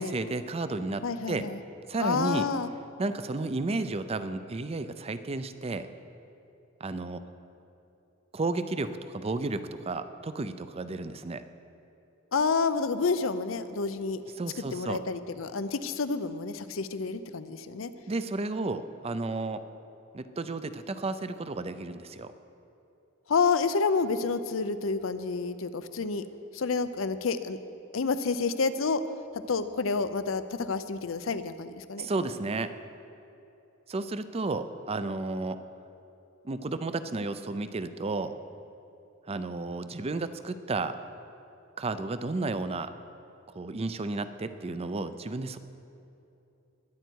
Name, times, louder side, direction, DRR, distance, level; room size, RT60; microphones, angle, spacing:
voice 1, 0.0-1.5 1.9-2.5 3.0-5.9 6.8-7.2 8.3-11.4 14.4-15.0 18.1-19.6 20.1-22.3 32.0-32.7 33.9-35.6 36.4-38.3 39.3-41.0 41.8-42.9 43.5-45.6, right 3 dB, 30° right, 11 dB, 0.5 m, -32 dB
voice 2, 1.0-1.6 2.0-2.7 12.3-14.2 14.7-17.9 23.3-26.2 26.5-27.6 27.9-29.0 29.3-32.1, left 4 dB, 85° left, 12 dB, 0.6 m, -29 dB
21.0 x 9.1 x 4.6 m, 2.8 s
head